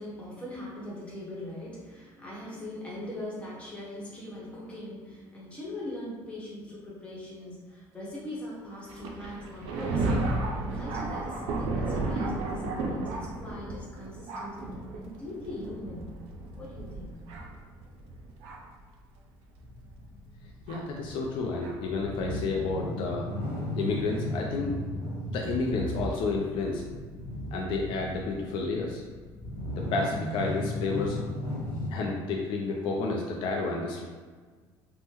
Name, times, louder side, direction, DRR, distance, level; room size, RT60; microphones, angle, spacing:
voice 1, 0.0-14.6 14.9-16.0 16.6-17.1, left 1 dB, 10° left, -6 dB, 1.0 m, -41 dB
Thunder, 8.9-18.8 19.6-19.7 20.7-20.8 21.6-21.8, right 2 dB, 80° right, 0.4 m, -33 dB
sound 1, 19.6-31.9, left 1 dB, 80° left, 0.8 m, -36 dB
voice 2, 20.7-23.3 23.7-24.8 25.3-26.8 27.5-29.0 29.8-31.2 31.9-34.0, left 3 dB, 60° left, -1 dB, 0.4 m, -30 dB
3.4 x 2.1 x 2.9 m, 1.5 s
cardioid pair, 140°, 10 cm